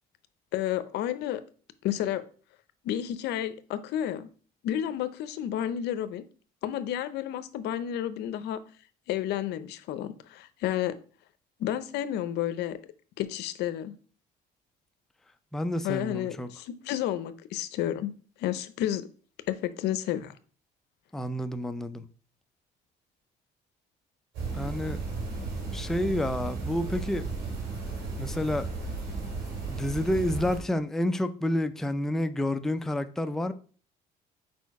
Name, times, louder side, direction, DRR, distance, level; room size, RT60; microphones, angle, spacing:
voice 1, 0.5-1.4 1.8-2.2 2.8-4.3 4.6-6.2 6.6-8.6 9.1-11.0 11.6-12.8 13.2-13.9 15.8-18.1 18.4-19.1 19.5-20.3, left 11 dB, 80° left, 0.6 m, -31 dB
voice 2, 15.5-16.5 21.1-22.1 24.5-25.0 25.7-27.2 28.2-28.7 29.7-33.5, left 1 dB, ahead, 0.4 m, -29 dB
sound 1, 24.3-30.6, right 3 dB, 85° right, 2.5 m, -34 dB
4.7 x 4.4 x 4.6 m
cardioid pair, 110°, 17 cm